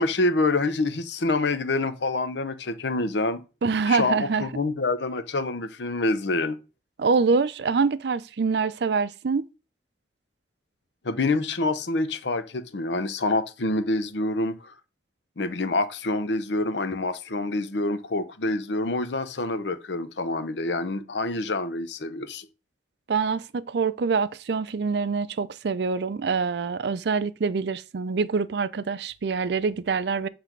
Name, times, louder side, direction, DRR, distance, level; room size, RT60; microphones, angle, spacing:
voice 1, 0.0-3.4 3.9-6.6 11.0-14.6 15.4-22.5, left 2 dB, 80° left, 0.8 m, -26 dB
voice 2, 3.6-4.5 7.0-9.5 23.1-30.3, right 5 dB, 70° right, 0.4 m, -25 dB
7.9 x 3.4 x 6.0 m
head